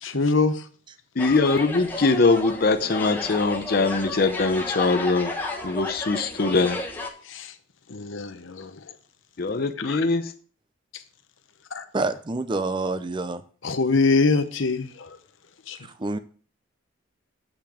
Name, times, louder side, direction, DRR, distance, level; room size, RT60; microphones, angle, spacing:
voice 1, 0.0-0.6 7.2-7.5 7.9-8.8 9.8-10.1 11.7-11.8 13.6-15.2 15.7-15.8, left 3 dB, 75° left, 8 dB, 0.9 m, -24 dB
voice 2, 1.2-5.3 5.6-6.8 9.4-10.3, left 3 dB, 50° left, 7 dB, 0.6 m, -22 dB
sound 1, 1.2-7.1, left 2 dB, 10° left, 1.3 m, -33 dB
voice 3, 11.9-13.4 15.8-16.2, right 3 dB, 25° right, 11 dB, 0.5 m, -28 dB
8.8 x 5.9 x 4.9 m, 0.43 s
head